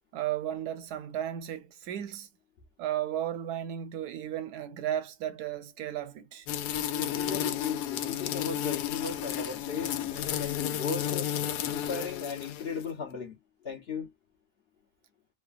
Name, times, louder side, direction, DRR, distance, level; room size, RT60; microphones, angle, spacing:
voice 1, 0.1-2.3 2.8-6.5 7.3-7.5, right 11 dB, 85° right, 1.2 m, -34 dB
sound 1, 6.5-12.8, left 10 dB, 85° left, 1.1 m, -32 dB
voice 2, 6.9-11.3 11.7-13.4 13.6-14.1, left 5 dB, 50° left, 0.8 m, -36 dB
3.3 x 2.1 x 2.3 m
omnidirectional pair, 1.7 m